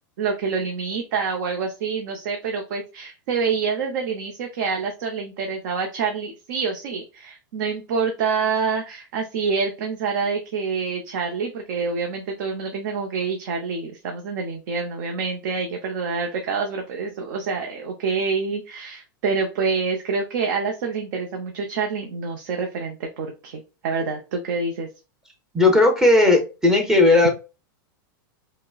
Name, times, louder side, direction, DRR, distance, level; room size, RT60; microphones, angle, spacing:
voice 1, 0.2-24.9, right 5 dB, 55° right, 3 dB, 0.7 m, -27 dB
voice 2, 25.5-27.3, left 2 dB, 5° right, 3 dB, 0.7 m, -16 dB
5.0 x 2.1 x 2.3 m, 0.30 s
supercardioid pair, 155°, 11 cm